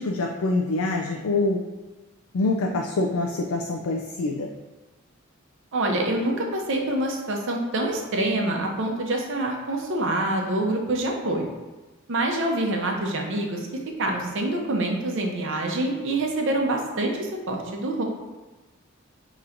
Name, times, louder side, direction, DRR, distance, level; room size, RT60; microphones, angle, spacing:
voice 1, 0.0-1.6 2.3-4.5, left 2 dB, 75° left, 1 dB, 0.4 m, -25 dB
voice 2, 5.7-11.5 12.1-13.7 14.0-18.0, right 1 dB, 65° right, 1 dB, 0.7 m, -26 dB
5.7 x 3.0 x 2.5 m, 1.2 s
head